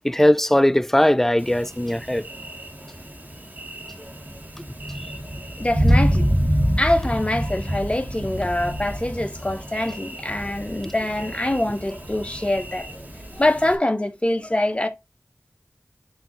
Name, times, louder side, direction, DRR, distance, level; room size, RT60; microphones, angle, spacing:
voice 1, 0.0-2.3 10.8-10.9, left 1 dB, 5° left, 0.3 m, -19 dB
Thunder, 1.4-13.8, equal, 40° right, 1.7 m, -27 dB
voice 2, 5.6-6.3 6.8-13.0 13.3-14.9, left 1 dB, 25° left, 1.1 m, -24 dB
7.7 x 3.0 x 4.3 m
wide cardioid pair, 55°, 5 cm